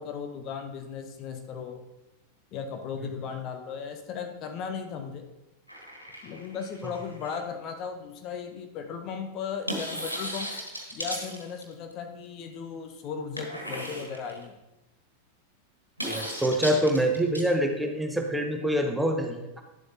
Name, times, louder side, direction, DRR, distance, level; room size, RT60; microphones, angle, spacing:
voice 1, 0.0-1.8 2.5-5.2 6.2-10.5 10.9-14.5, left 6 dB, 35° left, 5 dB, 0.9 m, -36 dB
sound 1, 5.7-7.4 9.7-11.9 13.4-14.4 16.0-17.4, equal, 90° right, 1.4 m, -36 dB
voice 2, 16.0-19.6, right 1 dB, 5° right, 3 dB, 0.9 m, -26 dB
11.0 x 7.8 x 2.9 m, 0.97 s
figure-of-eight pair, 90°, 0 cm